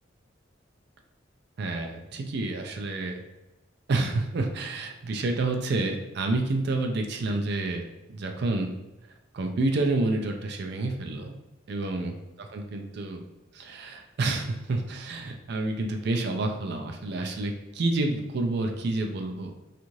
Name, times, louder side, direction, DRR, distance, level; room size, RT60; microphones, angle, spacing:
voice 1, 1.6-3.2 3.9-8.7 9.3-11.3 11.7-12.1 12.5-13.2 13.5-19.5, right 2 dB, 55° right, 3 dB, 0.4 m, -29 dB
2.6 x 2.4 x 3.0 m, 0.97 s
head